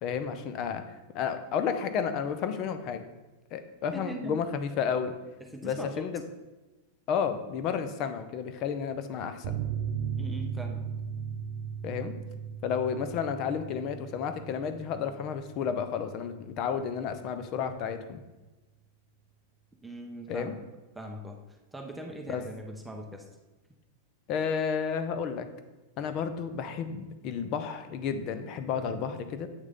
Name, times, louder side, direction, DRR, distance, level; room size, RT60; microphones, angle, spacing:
voice 1, 0.0-0.8 1.1-3.0 3.5-5.1 5.6-6.2 7.1-9.6 11.8-12.2 12.6-18.2 20.3-20.5 22.3-22.4 24.3-25.5 26.0-29.5, left 7 dB, 45° left, 9 dB, 0.6 m, -32 dB
voice 2, 3.9-4.4 5.5-6.1 10.2-10.8 19.8-20.6 20.9-21.4 21.7-23.3, right 1 dB, 5° right, 2 dB, 0.7 m, -40 dB
sound 1, 9.4-16.5 16.8-16.9 17.2-17.3, right 7 dB, 65° right, 0.4 m, -37 dB
8.0 x 3.2 x 3.7 m, 1.1 s
hypercardioid pair, 120°, 0 cm